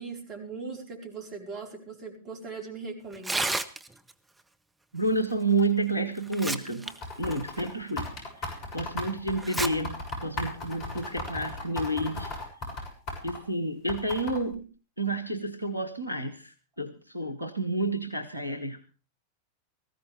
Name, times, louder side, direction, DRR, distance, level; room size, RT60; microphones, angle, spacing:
voice 1, 0.0-3.6 17.2-17.3, right 4 dB, 35° right, 1 dB, 4.6 m, -40 dB
Tearing, 3.1-4.1 5.6-5.7 6.2-6.9 7.3-7.4 8.0-8.1 9.4-9.7 10.1-10.2 11.0-11.3, right 2 dB, 10° right, 1.1 m, -31 dB
voice 2, 4.9-6.9 7.2-12.3 13.2-14.7 15.0-18.8, right 2 dB, 90° right, 6 dB, 1.2 m, -30 dB
sound 1, 6.9-13.4 13.9-14.5, left 2 dB, 40° left, 6.7 m, -35 dB
19.0 x 15.0 x 3.4 m, 0.34 s
figure-of-eight pair, 90°, 0 cm